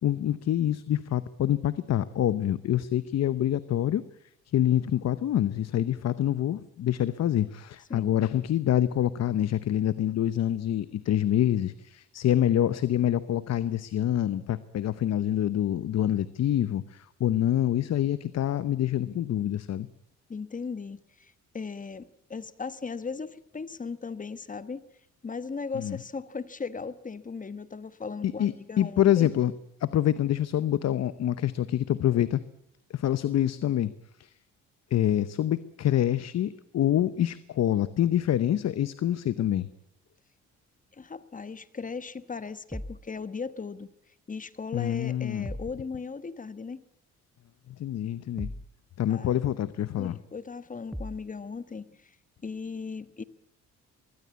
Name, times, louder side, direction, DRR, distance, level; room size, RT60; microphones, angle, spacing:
voice 1, 0.0-4.0 4.5-19.9 25.7-26.0 28.2-29.5 29.8-32.4 32.9-33.9 34.2-34.3 34.9-39.7 44.7-45.5 47.7-48.5 49.0-50.2, left 11 dB, 60° left, 15 dB, 0.9 m, -26 dB
voice 2, 20.3-24.8 25.2-29.3 40.9-43.9 44.3-46.8 49.1-49.4 50.0-52.1 52.4-53.2, left 5 dB, 25° left, 15 dB, 1.2 m, -37 dB
sound 1, 42.7-43.1 45.4-45.8 48.4-48.7 50.9-51.3, equal, ahead, 1.3 m, -38 dB
23.0 x 16.5 x 8.4 m, 0.75 s
cardioid pair, 90°, 30 cm